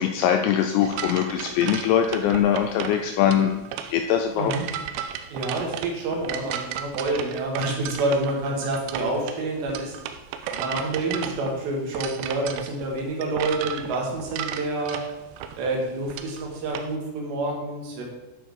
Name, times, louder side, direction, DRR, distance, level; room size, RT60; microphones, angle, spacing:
voice 1, 0.0-3.6 3.9-4.5, left 9 dB, 85° left, 5 dB, 2.6 m, -22 dB
sound 1, 0.8-16.9, right 9 dB, 85° right, 2.5 m, -34 dB
voice 2, 4.4-4.7 5.3-10.0 10.5-15.0 15.6-18.0, right 2 dB, 70° right, -1 dB, 3.8 m, -28 dB
10.0 x 6.3 x 4.8 m, 1.0 s
omnidirectional pair, 5.5 m